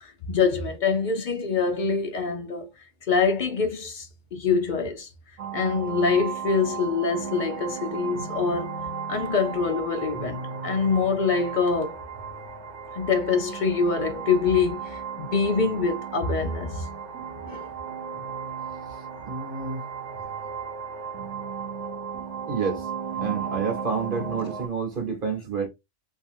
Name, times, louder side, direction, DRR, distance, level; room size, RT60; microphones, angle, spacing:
voice 1, 0.0-2.7 3.1-5.1 5.5-8.7 9.1-12.0 12.9-16.9 17.5-17.7, left 5 dB, 55° left, 0.6 m, -25 dB
sound 1, 5.4-24.7, right 6 dB, 85° right, 1.1 m, -35 dB
voice 2, 18.9-19.8 22.5-22.9 23.2-25.7, right 5 dB, 50° right, 1.2 m, -29 dB
2.7 x 2.7 x 2.5 m
omnidirectional pair, 1.2 m